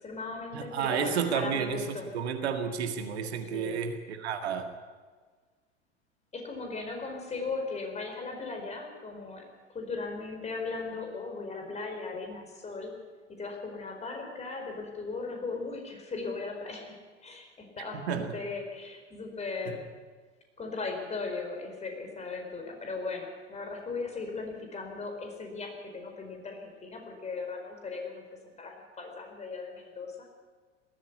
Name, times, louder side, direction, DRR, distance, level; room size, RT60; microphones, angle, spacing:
voice 1, 0.0-2.0 3.5-3.8 6.3-9.5 9.7-12.9 13.3-16.9 17.2-19.9 20.6-30.3, left 4 dB, 20° left, 3 dB, 4.7 m, -38 dB
voice 2, 0.5-1.9 2.1-4.7 18.1-18.3 19.7-19.8, right 7 dB, 60° right, 6 dB, 1.9 m, -31 dB
19.5 x 14.0 x 9.6 m, 1.5 s
figure-of-eight pair, 90°, 36 cm